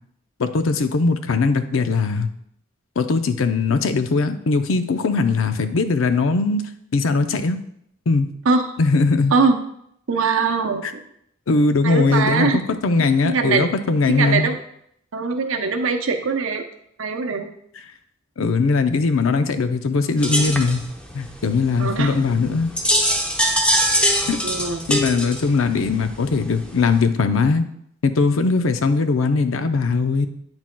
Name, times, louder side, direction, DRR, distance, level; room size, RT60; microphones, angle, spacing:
voice 1, 0.4-2.3 3.0-7.6 8.1-8.3 8.8-9.3 11.5-14.5 18.4-20.8 21.1-22.7 24.3-24.4 24.9-27.6 28.0-30.3, left 4 dB, 85° left, 8 dB, 0.5 m, -20 dB
voice 2, 10.1-11.0 11.8-12.6 13.2-13.7 14.1-14.6 15.1-16.6 17.0-17.5 20.4-20.5 21.8-22.2 24.4-24.8, right 4 dB, 80° right, 6 dB, 0.7 m, -21 dB
sound 1, 20.2-27.1, equal, 5° left, 0.7 m, -23 dB
8.7 x 6.1 x 2.2 m, 0.72 s
head